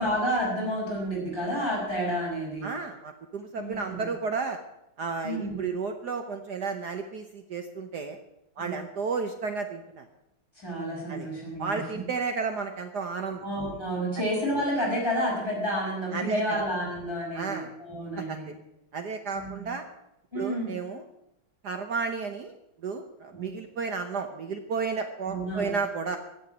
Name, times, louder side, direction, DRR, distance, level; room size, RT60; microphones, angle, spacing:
voice 1, 0.0-2.7 3.6-4.1 5.2-5.6 8.6-8.7 10.5-11.8 13.4-18.5 19.3-19.7 20.3-20.8 23.3-23.5 25.3-25.7, equal, 10° right, -5 dB, 6.3 m, -30 dB
voice 2, 2.6-4.6 5.0-8.2 8.6-10.0 11.1-11.3 11.6-13.4 16.1-16.6 17.3-17.7 18.2-18.5 18.9-19.8 20.3-21.0 21.6-22.5 22.8-26.2, right 5 dB, 55° right, 7 dB, 1.4 m, -32 dB
16.0 x 7.2 x 9.4 m, 0.85 s
omnidirectional pair, 2.4 m